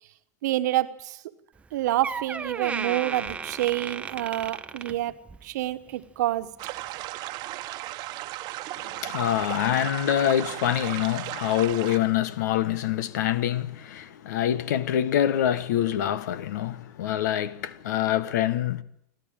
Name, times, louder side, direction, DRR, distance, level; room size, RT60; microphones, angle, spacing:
voice 1, 0.4-1.2 1.7-6.5, right 14 dB, 75° right, 1.4 m, -28 dB
Door, 1.6-1.7 2.0-5.5 5.9-6.2 6.9-7.0, right 5 dB, 15° right, 0.8 m, -35 dB
sound 1, 6.6-12.0, right 17 dB, 45° right, 1.1 m, -35 dB
voice 2, 8.8-18.8, left 11 dB, 80° left, 1.3 m, -25 dB
29.5 x 12.0 x 9.0 m
supercardioid pair, 125°, 9 cm